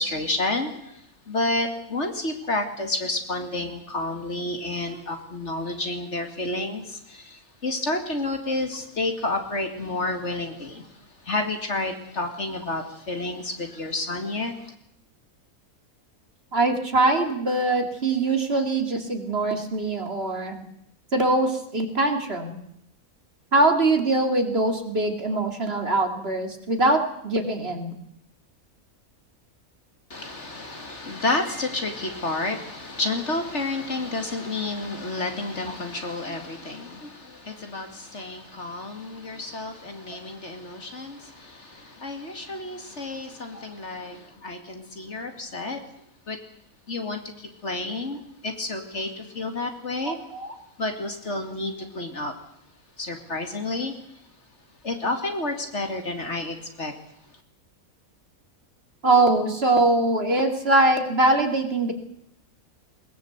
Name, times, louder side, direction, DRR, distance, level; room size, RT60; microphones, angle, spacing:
voice 1, 0.0-14.7 30.1-45.8 46.3-46.4 46.9-50.2 50.8-52.3 53.0-53.9 54.8-56.9, left 2 dB, 50° left, 6 dB, 2.7 m, -30 dB
voice 2, 16.5-20.6 21.1-22.6 23.5-28.0 43.5-43.6 50.0-50.5 59.0-61.9, right 2 dB, 45° right, 5 dB, 2.9 m, -22 dB
21.5 x 20.0 x 8.1 m, 0.72 s
omnidirectional pair, 1.5 m